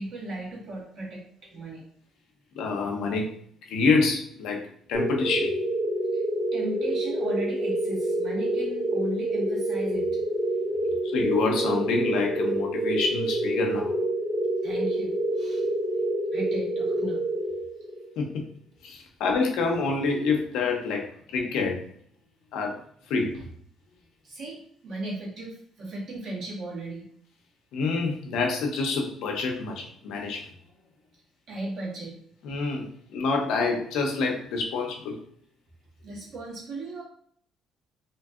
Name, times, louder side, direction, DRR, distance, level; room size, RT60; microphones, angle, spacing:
voice 1, 0.0-1.8 6.1-6.2 6.5-10.2 10.9-11.0 14.6-15.7 16.3-17.3 23.3-23.5 24.2-27.1 31.5-32.2 36.0-37.0, right 2 dB, 65° right, -5 dB, 1.3 m, -36 dB
voice 2, 2.5-3.4 3.7-4.6 4.9-5.6 11.0-13.9 18.2-18.5 18.8-21.9 22.5-22.8 23.1-23.4 27.7-30.5 32.4-35.2, left 4 dB, 80° left, 2 dB, 0.6 m, -27 dB
sound 1, 4.9-18.1, right 1 dB, 25° right, 0.6 m, -27 dB
2.8 x 2.6 x 2.4 m, 0.62 s
cardioid pair, 95°, 0 cm